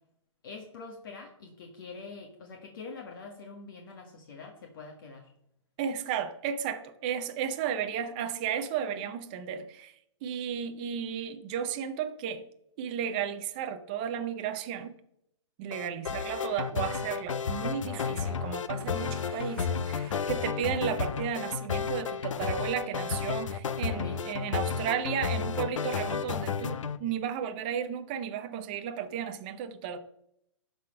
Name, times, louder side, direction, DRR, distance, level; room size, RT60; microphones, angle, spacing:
voice 1, 0.4-5.3 24.0-24.2 24.7-24.8, left 4 dB, 45° left, 1.5 m, -45 dB
voice 2, 5.8-9.9 10.2-12.5 12.8-15.0 15.6-30.0, right 8 dB, 20° right, 0.4 m, -34 dB
sound 1, 15.7-27.0, left 6 dB, 85° left, 0.8 m, -32 dB
Explosion / Shatter, 18.8-21.6, right 8 dB, 45° right, 0.8 m, -51 dB
11.5 x 4.2 x 5.4 m
hypercardioid pair, 170°, 16 cm